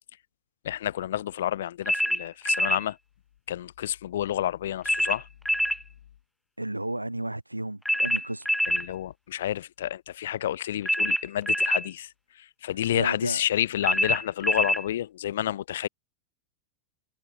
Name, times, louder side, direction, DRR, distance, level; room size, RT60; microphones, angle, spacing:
voice 1, 0.6-3.0 3.5-5.3 8.7-12.1 12.6-15.9, left 12 dB, 60° left, 2.0 m, -29 dB
sound 1, 1.9-2.8 4.8-5.8 7.8-8.9 10.8-11.9 13.8-14.8, equal, ahead, 0.6 m, -25 dB
voice 2, 6.6-8.5 12.9-13.4, right 1 dB, 85° right, 5.4 m, -33 dB
figure-of-eight pair, 90°, 0 cm